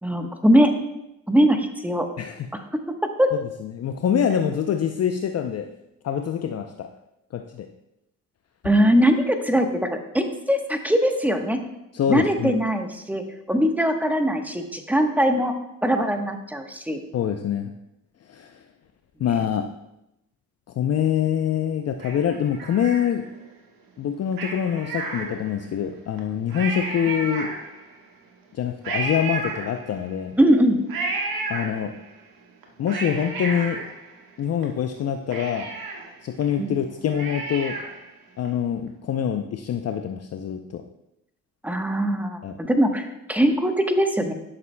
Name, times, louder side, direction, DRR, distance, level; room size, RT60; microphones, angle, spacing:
voice 1, 0.0-0.8 1.3-2.1 2.7-3.3 8.6-11.6 12.1-15.5 15.8-17.0 30.4-30.8 36.6-36.7 41.6-44.3, equal, 5° right, 5 dB, 1.1 m, -21 dB
voice 2, 3.6-5.7 6.0-6.9 7.3-7.7 11.9-12.6 17.1-17.7 18.3-18.6 19.2-19.7 20.8-23.2 24.0-27.5 28.5-30.3 31.5-31.9 32.8-33.8 34.4-35.7 36.2-37.8 38.4-40.8 42.4-42.6, left 8 dB, 40° left, 5 dB, 0.6 m, -25 dB
Cat, 22.0-23.5 24.3-25.7 26.2-26.3 26.5-28.0 28.8-30.2 30.9-32.2 32.6-34.6 35.0-35.1 35.3-38.1 38.4-38.5, right 3 dB, 60° right, 1.4 m, -32 dB
11.0 x 6.6 x 2.2 m, 0.86 s
hypercardioid pair, 55°, 39 cm